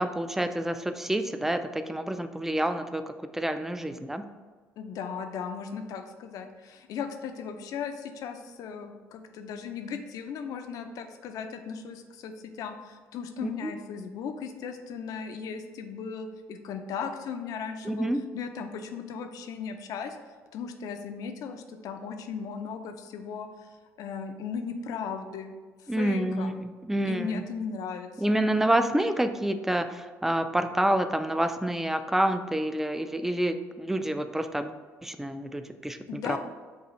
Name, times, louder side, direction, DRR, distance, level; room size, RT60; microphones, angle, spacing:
voice 1, 0.0-4.3 13.4-13.7 17.8-18.2 25.9-27.4 28.2-34.8 35.0-36.4, right 1 dB, 5° right, 9 dB, 0.3 m, -28 dB
voice 2, 4.8-18.1 18.3-20.2 20.5-23.5 24.0-25.5 26.0-26.5 27.1-28.4 36.1-36.4, left 6 dB, 70° left, 6 dB, 0.4 m, -37 dB
5.3 x 2.4 x 3.0 m, 1.4 s
supercardioid pair, 65°, 6 cm